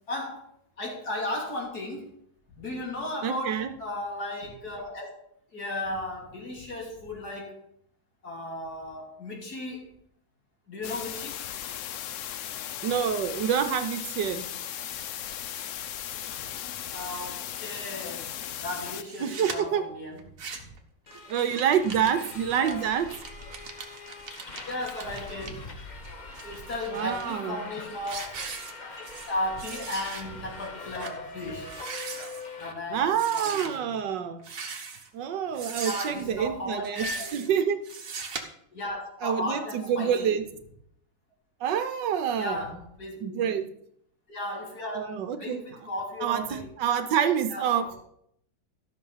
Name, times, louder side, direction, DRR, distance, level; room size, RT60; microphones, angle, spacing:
voice 1, 0.1-0.5 0.8-2.2 2.6-5.1 5.5-7.6 8.2-10.0 10.7-11.5 16.9-18.3 18.6-20.2 20.5-20.7 22.2-22.3 22.5-22.9 24.7-25.7 26.4-28.4 29.0-31.7 32.6-33.9 35.8-37.3 38.7-40.4 42.3-43.5 44.3-45.1 45.4-47.0 47.5-47.9, left 1 dB, 55° left, -1 dB, 3.1 m, -35 dB
voice 2, 3.2-3.7 12.8-14.5 19.2-19.8 21.3-23.1 26.9-27.7 32.9-34.4 35.1-37.0 37.3-37.8 39.2-40.4 41.6-42.6 43.2-43.6 45.0-45.6 46.2-48.0, right 8 dB, 70° right, 9 dB, 1.4 m, -27 dB
sound 1, 10.8-19.0, left 10 dB, 80° left, 0.6 m, -37 dB
sound 2, 19.0-19.6 20.2-20.8 21.1-25.5 26.0-27.2 27.7-27.8 28.1-29.3 29.6-30.2 30.6-30.7 31.0-31.2 31.6-32.4 33.1-33.7 34.4-35.1 35.5-36.2 36.8-37.5 37.8-38.4, right 5 dB, 50° right, 1.6 m, -39 dB
Subway metro underground, 21.1-32.7, left 3 dB, 30° left, 0.8 m, -43 dB
13.0 x 6.2 x 5.6 m, 0.70 s
omnidirectional pair, 2.0 m